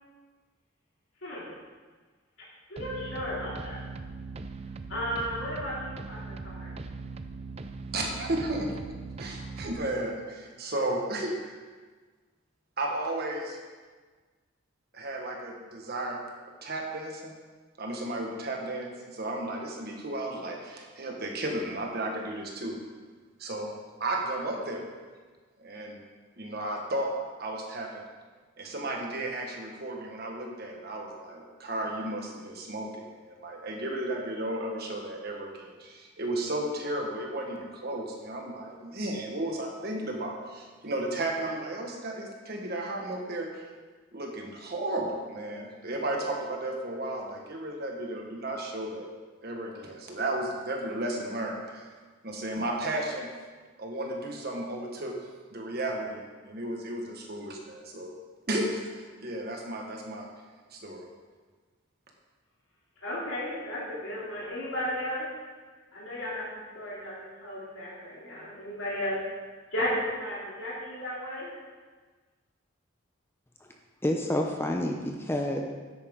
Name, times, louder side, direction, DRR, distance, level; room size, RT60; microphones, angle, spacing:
voice 1, 1.2-1.5 2.7-3.8 4.9-6.7 63.0-65.3 65.9-66.5 66.7-71.5, equal, 85° left, -7 dB, 2.9 m, -34 dB
sound 1, 2.8-9.8, right 3 dB, 30° right, 0.4 m, -40 dB
voice 2, 7.9-8.8 9.2-11.6 12.8-13.6 14.9-16.2 16.6-17.3 17.8-22.8 23.4-23.7 24.0-24.8 25.6-26.0 26.4-27.1 27.4-28.0 28.6-43.6 44.1-49.1 49.4-51.8 52.2-53.3 53.8-55.1 55.5-58.1 58.5-60.3 60.7-61.0, right 1 dB, 50° right, 0 dB, 1.5 m, -34 dB
voice 3, 74.0-75.6, left 1 dB, 10° left, 2 dB, 0.6 m, -28 dB
10.0 x 8.7 x 3.7 m, 1.4 s
head